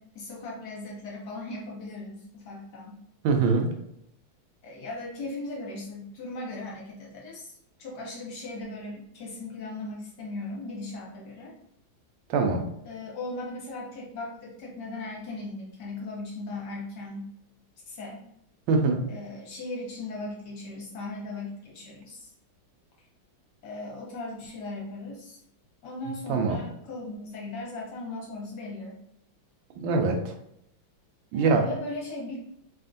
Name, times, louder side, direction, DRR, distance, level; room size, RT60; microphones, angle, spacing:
voice 1, 0.0-3.0 4.6-7.5 7.8-11.5 12.8-17.3 17.9-18.2 19.1-22.3 23.6-25.4 25.8-29.0 31.3-32.5, left 2 dB, 65° left, -3 dB, 1.3 m, -38 dB
voice 2, 3.2-3.7 12.3-12.6 18.7-19.0 26.3-26.6 29.8-30.3 31.3-31.7, right 4 dB, 80° right, 4 dB, 1.3 m, -23 dB
3.5 x 2.4 x 2.5 m, 0.76 s
omnidirectional pair, 2.2 m